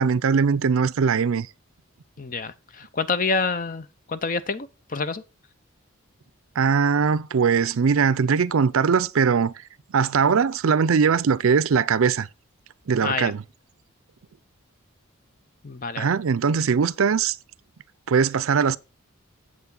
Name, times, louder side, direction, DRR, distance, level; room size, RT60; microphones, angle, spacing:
voice 1, 0.0-1.5 6.6-9.5 9.9-12.3 12.9-13.4 16.0-17.4 18.1-18.8, right 6 dB, 70° right, 0.5 m, -20 dB
voice 2, 2.2-5.2 13.0-13.3 15.6-16.1, left 4 dB, 40° left, 0.6 m, -28 dB
8.4 x 7.5 x 3.8 m
head